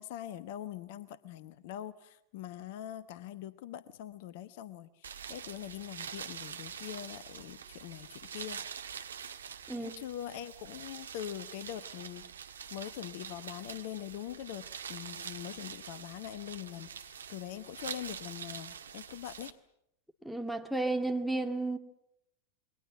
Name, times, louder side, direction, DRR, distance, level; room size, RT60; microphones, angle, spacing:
voice 1, 0.0-8.6 9.7-12.3 12.7-19.5, left 11 dB, 50° left, 16 dB, 1.0 m, -43 dB
sound 1, 5.0-19.5, right 7 dB, 70° right, 1.5 m, -45 dB
voice 2, 20.2-21.8, right 2 dB, ahead, 10 dB, 2.2 m, -32 dB
28.5 x 23.0 x 7.6 m, 0.77 s
figure-of-eight pair, 90°, 0 cm